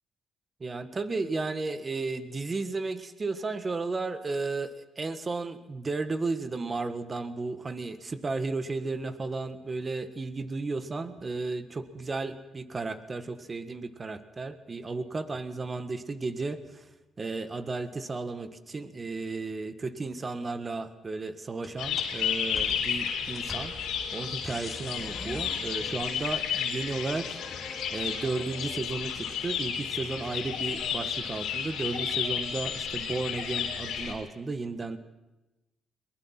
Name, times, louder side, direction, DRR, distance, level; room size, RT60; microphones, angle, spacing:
voice 1, 0.6-16.6 17.2-23.7 24.1-27.3 27.9-35.0, right 3 dB, 30° right, 10 dB, 1.6 m, -34 dB
sound 1, 21.6-26.4 26.9-28.4, left 2 dB, 10° left, 2.8 m, -45 dB
sound 2, 21.8-34.1, left 8 dB, 85° left, 3.6 m, -32 dB
22.0 x 20.5 x 6.0 m, 1.0 s
cardioid pair, 90°, 0 cm